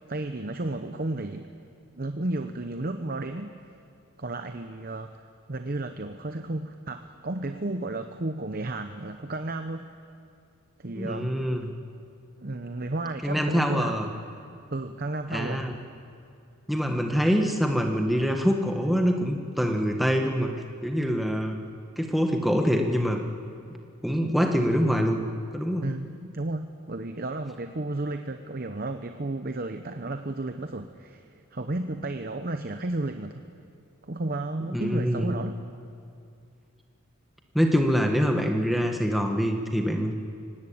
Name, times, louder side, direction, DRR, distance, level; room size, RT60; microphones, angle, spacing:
voice 1, 0.1-1.5 1.9-3.5 4.2-10.0 10.8-11.4 12.4-14.0 14.7-15.7 25.8-33.4 34.1-35.6, right 2 dB, 45° right, 7 dB, 0.8 m, -33 dB
voice 2, 10.9-11.7 13.2-14.1 15.3-15.7 16.7-20.5 20.8-21.6 22.0-23.2 24.0-25.2 25.5-25.9 34.7-35.3 37.5-40.1, equal, ahead, 3 dB, 1.5 m, -25 dB
24.0 x 18.5 x 8.7 m, 2.4 s
head